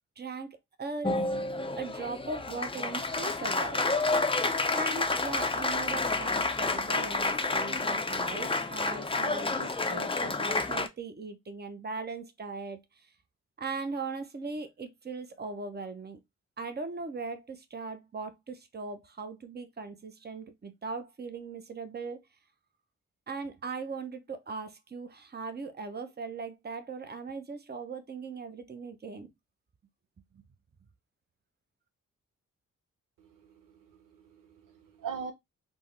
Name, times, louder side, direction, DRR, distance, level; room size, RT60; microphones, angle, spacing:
voice 1, 0.2-0.5 0.8-1.2 1.8-4.3 4.7-12.8 13.6-16.2 16.6-22.2 23.3-29.3, right 4 dB, 30° right, 0.8 m, -39 dB
Applause, 1.0-10.9, left 3 dB, 15° left, 0.5 m, -30 dB
voice 2, 33.2-35.3, right 6 dB, 70° right, 0.7 m, -42 dB
3.6 x 2.1 x 3.2 m
supercardioid pair, 40°, 34 cm